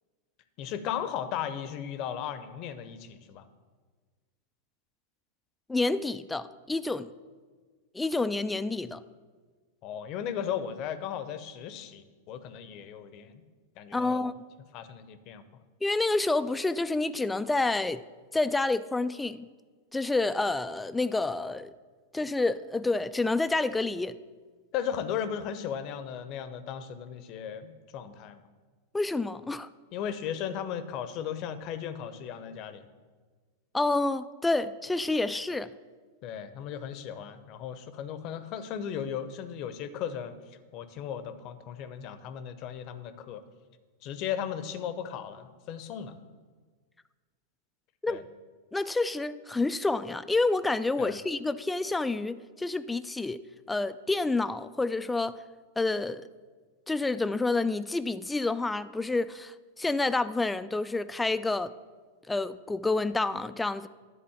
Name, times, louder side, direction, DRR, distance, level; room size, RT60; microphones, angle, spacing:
voice 1, 0.6-3.5 9.8-13.3 13.8-14.3 14.7-15.4 24.7-28.4 29.9-32.8 36.2-40.4 40.7-43.4 44.0-46.2 48.1-48.2 51.0-51.2, left 9 dB, 45° left, 0.7 m, -36 dB
voice 2, 5.7-7.1 7.9-9.0 13.9-14.3 15.8-18.0 18.3-19.5 19.9-21.7 22.1-24.1 28.9-29.7 33.7-35.7 48.0-48.2 48.7-53.4 53.7-55.4 55.8-56.3 56.9-61.7 62.3-63.9, left 3 dB, 10° left, 0.3 m, -28 dB
10.0 x 4.2 x 7.1 m
hypercardioid pair, 100°, 0 cm